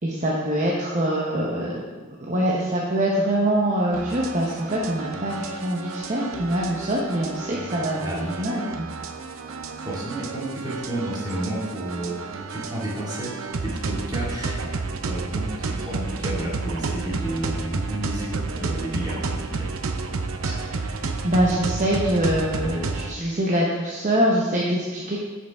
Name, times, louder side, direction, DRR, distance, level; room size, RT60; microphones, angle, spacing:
voice 1, 0.0-1.8 2.3-8.9 20.4-21.0 21.2-25.2, right 1 dB, 35° right, -4 dB, 1.0 m, -24 dB
sound 1, 3.9-23.1, right 3 dB, 80° right, 0.6 m, -31 dB
voice 2, 8.0-8.4 9.8-19.7, right 1 dB, 20° right, -6 dB, 2.3 m, -31 dB
10.5 x 5.8 x 3.6 m, 1.4 s
head